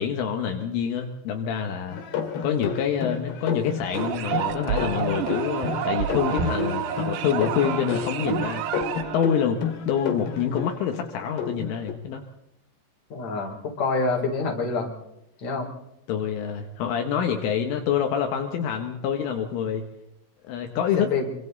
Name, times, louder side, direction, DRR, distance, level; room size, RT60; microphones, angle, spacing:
voice 1, 0.0-2.0 2.4-8.6 9.1-9.6 9.9-12.2 16.1-19.9 20.5-21.1, left 8 dB, 75° left, 4 dB, 3.9 m, -26 dB
sound 1, 1.9-11.9, left 7 dB, 55° left, 4.1 m, -32 dB
sound 2, 3.9-9.3, right 10 dB, 70° right, 2.7 m, -29 dB
voice 2, 13.1-14.9 15.4-15.7 21.0-21.3, left 3 dB, 35° left, 1 dB, 4.9 m, -26 dB
27.0 x 25.5 x 4.1 m, 0.82 s
omnidirectional pair, 6.0 m